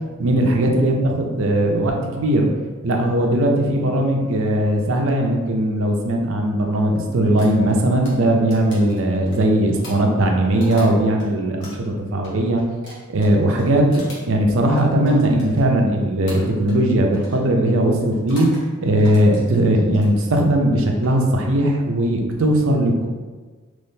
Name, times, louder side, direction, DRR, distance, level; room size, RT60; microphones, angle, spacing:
voice 1, 0.2-2.5 2.8-12.6 13.1-13.9 14.3-18.5 18.8-23.1, right 1 dB, 65° right, 2 dB, 0.6 m, -19 dB
sound 1, 7.4-11.3 11.6-15.9 16.3-16.9 17.1-17.5 18.1-18.6 19.0-20.1 20.6-21.1, left 1 dB, 55° left, 1.2 m, -41 dB
3.6 x 3.0 x 2.7 m, 1.4 s
head